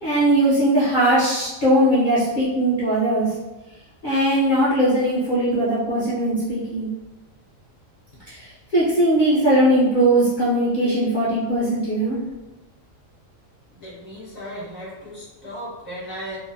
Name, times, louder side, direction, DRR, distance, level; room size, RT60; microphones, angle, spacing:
voice 1, 0.0-3.3 4.0-6.9 8.3-12.2, right 1 dB, 50° left, -10 dB, 0.6 m, -19 dB
voice 2, 13.8-16.4, equal, 10° right, -9 dB, 0.5 m, -36 dB
2.6 x 2.0 x 2.5 m, 1.1 s
omnidirectional pair, 1.4 m